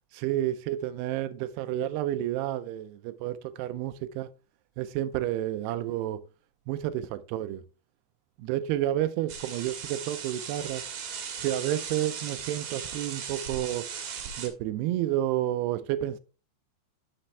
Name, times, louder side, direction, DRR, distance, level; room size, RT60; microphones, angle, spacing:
voice 1, 0.1-4.3 4.8-6.2 6.7-7.6 8.4-10.8 11.4-13.9 14.4-16.2, right 13 dB, 80° right, 2.4 m, -30 dB
sound 1, 9.3-14.5, right 7 dB, 60° right, 2.5 m, -37 dB
10.0 x 6.4 x 3.3 m
omnidirectional pair, 5.1 m